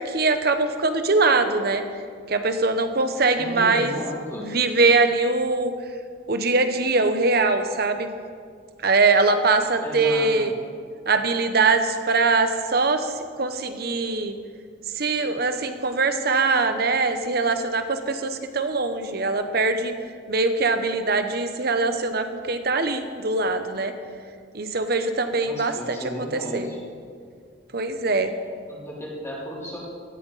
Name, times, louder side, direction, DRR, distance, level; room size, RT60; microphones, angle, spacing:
voice 1, 0.0-1.8 2.3-4.0 4.4-5.7 6.3-8.1 8.8-10.5 11.1-14.4 14.9-19.9 20.3-23.9 24.5-26.0 26.3-26.7 27.7-28.3, right 3 dB, 55° right, 8 dB, 1.0 m, -22 dB
voice 2, 3.4-4.5 9.8-10.6 25.4-26.8 28.7-29.8, equal, 15° left, -5 dB, 3.3 m, -34 dB
17.5 x 14.0 x 4.2 m, 2.2 s
head